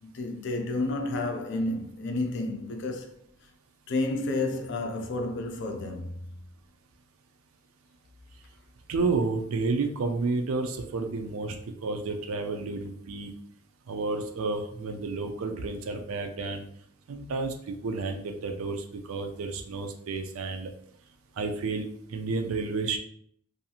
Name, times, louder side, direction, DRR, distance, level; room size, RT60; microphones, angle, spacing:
voice 1, 0.0-3.2 3.9-6.4, left 2 dB, 55° left, 0.4 m, -31 dB
voice 2, 8.9-13.3 13.9-16.6 17.1-20.7 21.4-23.0, right 3 dB, 70° right, 0.4 m, -31 dB
2.6 x 2.4 x 2.7 m
head